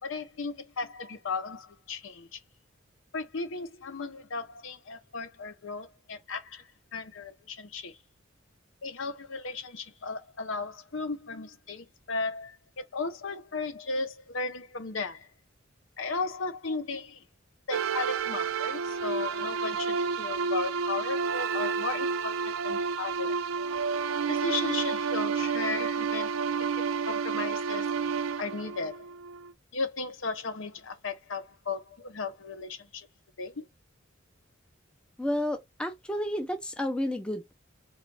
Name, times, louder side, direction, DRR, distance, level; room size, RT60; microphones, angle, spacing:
voice 1, 0.0-2.4 3.1-6.6 6.9-8.0 8.8-15.3 16.0-17.2 17.7-22.3 22.6-23.4 24.3-26.3 27.1-27.9 28.4-29.1 29.7-33.1 33.4-33.6, left 4 dB, 70° left, 0.7 m, -35 dB
sound 1, 17.7-29.5, right 5 dB, 80° right, 0.4 m, -30 dB
voice 2, 35.2-37.5, left 1 dB, 5° left, 0.5 m, -31 dB
4.0 x 2.4 x 3.2 m
head